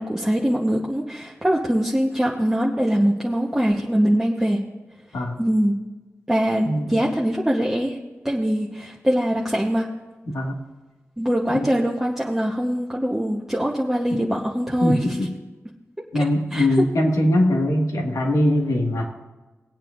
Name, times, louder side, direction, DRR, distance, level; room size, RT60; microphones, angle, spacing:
voice 1, 0.0-4.6 5.4-5.8 6.3-8.0 8.2-9.9 11.2-15.0 16.1-16.3 16.5-16.7, equal, 10° right, -3 dB, 1.1 m, -22 dB
voice 2, 6.6-7.0 10.3-10.6 11.5-11.7 14.8-15.3 16.1-19.1, left 1 dB, 90° left, 0 dB, 1.9 m, -21 dB
20.5 x 9.0 x 2.6 m, 1.2 s
wide cardioid pair, 115°, 5 cm